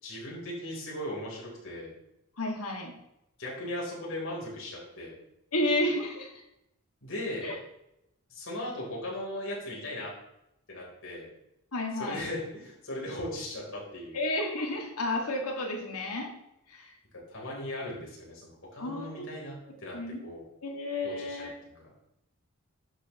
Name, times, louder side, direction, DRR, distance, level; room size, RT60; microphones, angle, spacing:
voice 1, 0.0-1.9 3.4-5.2 7.0-7.6 8.3-10.1 10.7-11.3 12.0-14.2 17.3-20.0 20.2-20.4 21.0-21.5, left 1 dB, 60° left, -4 dB, 3.8 m, -38 dB
voice 2, 2.4-2.9 5.5-6.3 7.4-7.5 11.7-12.2 14.1-16.3 16.7-16.9 18.8-19.3 19.9-20.2 20.6-21.5, left 1 dB, 85° left, 1 dB, 2.0 m, -31 dB
11.0 x 7.2 x 3.1 m, 0.85 s
head